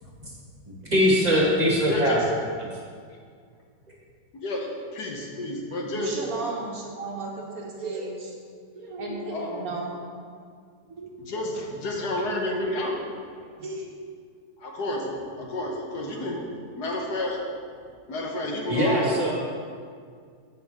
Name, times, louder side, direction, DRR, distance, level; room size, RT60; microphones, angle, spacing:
voice 1, 0.7-2.2 18.7-19.3, equal, 25° right, -4 dB, 1.5 m, -22 dB
voice 2, 1.9-2.2 4.3-6.2 9.3-9.6 11.2-13.0 14.6-16.4 16.7-17.4 18.1-19.3, left 1 dB, 70° left, 0 dB, 1.6 m, -30 dB
voice 3, 5.9-8.3 8.7-10.0 10.9-11.1 13.6-13.9, right 3 dB, 60° right, -1 dB, 1.5 m, -34 dB
8.9 x 7.4 x 3.6 m, 2.1 s
omnidirectional pair, 1.9 m